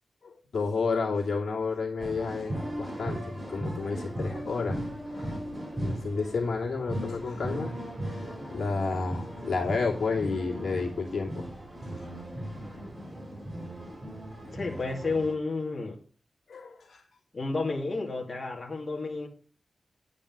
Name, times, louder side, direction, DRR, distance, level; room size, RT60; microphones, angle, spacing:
voice 1, 0.2-4.8 5.1-5.3 5.8-7.7 8.1-11.5 12.0-12.1 16.5-17.0, left 4 dB, 80° left, -1 dB, 2.7 m, -31 dB
sound 1, 2.0-15.3, right 1 dB, 30° right, 4.9 m, -37 dB
voice 2, 14.5-16.0 17.3-19.3, left 3 dB, 35° left, -1 dB, 2.6 m, -31 dB
10.0 x 5.3 x 7.4 m, 0.39 s
wide cardioid pair, 145°, 0 cm